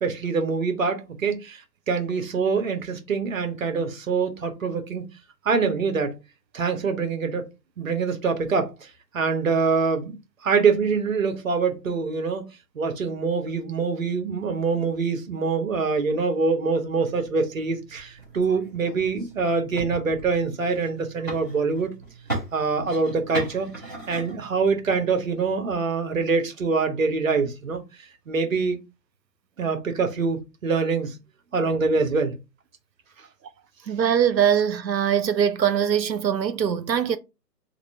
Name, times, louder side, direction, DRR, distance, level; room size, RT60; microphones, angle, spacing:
voice 1, 0.0-1.6 1.9-5.0 5.4-6.2 6.5-7.5 7.8-8.7 9.1-10.1 10.4-12.5 12.7-21.9 22.5-23.8 24.1-27.8 28.3-28.8 29.6-31.1 31.5-32.4, right 4 dB, 55° right, 0.9 m, -24 dB
sound 1, 17.1-25.1, right 2 dB, 15° right, 0.6 m, -38 dB
voice 2, 33.9-37.2, right 8 dB, 85° right, 0.6 m, -22 dB
2.9 x 2.2 x 4.1 m
figure-of-eight pair, 135°, 49 cm